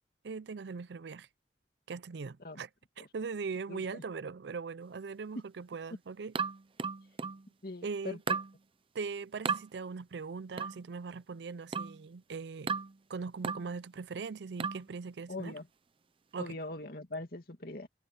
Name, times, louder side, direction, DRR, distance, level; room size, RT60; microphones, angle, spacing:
voice 1, 0.2-1.3 1.9-2.7 3.0-6.3 7.8-8.2 8.9-12.8 13.1-15.6 16.3-16.6, right 5 dB, 75° right, 0.5 m, -40 dB
voice 2, 3.7-4.0 7.6-8.2 15.3-15.7 16.4-17.9, left 2 dB, 60° left, 2.4 m, -41 dB
sound 1, 6.4-7.5 8.3-8.6 9.5-9.7 10.6-10.8 11.7-12.0 12.7-13.0 13.4-13.7 14.6-14.9, right 5 dB, 30° right, 0.6 m, -34 dB
head